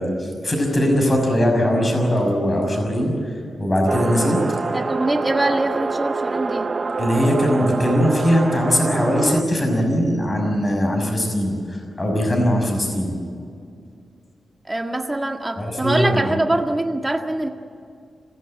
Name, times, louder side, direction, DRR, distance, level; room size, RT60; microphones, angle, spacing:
voice 1, 0.0-3.1 3.6-4.4 7.0-13.1 15.6-16.3, equal, 25° left, 2 dB, 6.0 m, -20 dB
sound 1, 3.9-9.4, right 4 dB, 35° right, 0.6 m, -26 dB
voice 2, 4.7-6.7 14.6-17.5, right 1 dB, 15° right, 4 dB, 1.8 m, -23 dB
25.5 x 17.0 x 9.0 m, 2.3 s
wide cardioid pair, 110°, 0 cm